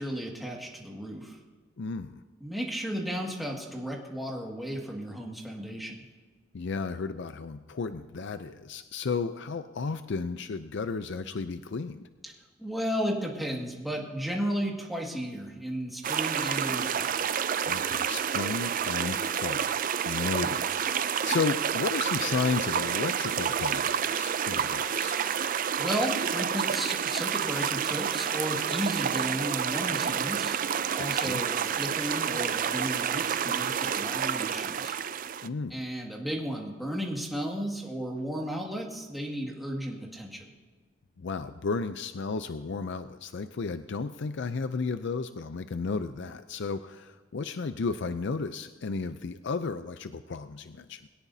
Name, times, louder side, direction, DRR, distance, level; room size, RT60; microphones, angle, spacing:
voice 1, 0.0-1.4 2.4-6.0 12.2-12.3 12.6-17.3 25.8-30.6 31.0-35.0 35.7-40.4, equal, ahead, -2 dB, 1.9 m, -34 dB
voice 2, 1.8-2.2 6.5-12.1 17.7-25.2 31.0-31.4 35.4-35.9 41.2-51.1, left 4 dB, 60° left, 11 dB, 0.5 m, -33 dB
sound 1, 16.0-35.5, right 8 dB, 40° right, 0.4 m, -29 dB
21.5 x 17.0 x 2.7 m, 1.3 s
head